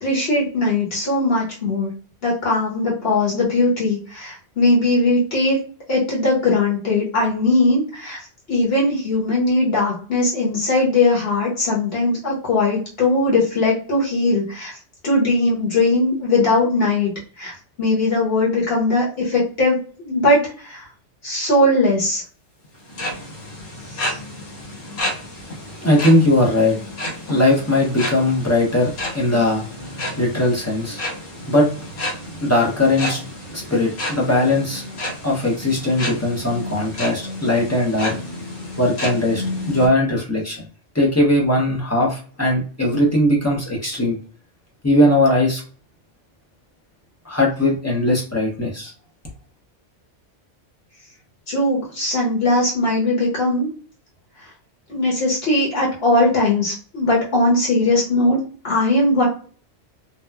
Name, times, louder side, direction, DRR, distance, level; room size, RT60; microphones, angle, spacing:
voice 1, 0.0-1.9 2.2-5.6 5.9-8.2 8.5-14.8 15.0-17.1 17.4-17.5 17.8-20.9 21.2-22.2 23.9-24.2 51.5-53.7 54.9-59.2, left 2 dB, 60° left, -5 dB, 1.1 m, -19 dB
sound 1, 22.7-39.9, left 1 dB, 90° left, 1.5 m, -31 dB
voice 2, 25.8-26.8 27.3-29.6 30.2-31.0 31.5-31.7 32.4-33.2 33.5-34.8 35.2-38.2 38.8-40.7 40.9-44.2 44.8-45.6 47.2-48.9, left 1 dB, 25° left, -3 dB, 0.3 m, -19 dB
2.9 x 2.1 x 2.2 m, 0.41 s
omnidirectional pair, 1.2 m